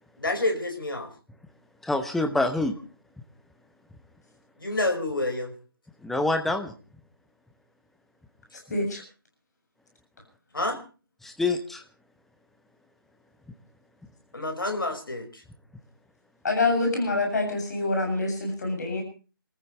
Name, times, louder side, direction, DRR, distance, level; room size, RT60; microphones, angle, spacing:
voice 1, 0.2-1.1 4.6-5.5 10.5-10.8 14.3-15.4, left 2 dB, 65° left, 6 dB, 5.3 m, -28 dB
voice 2, 1.8-2.7 6.0-6.7 11.2-11.8, left 2 dB, ahead, 6 dB, 0.9 m, -26 dB
voice 3, 8.7-9.0 16.4-19.0, left 2 dB, 50° left, 2 dB, 7.4 m, -26 dB
29.5 x 14.5 x 3.2 m, 0.36 s
figure-of-eight pair, 145°, 12 cm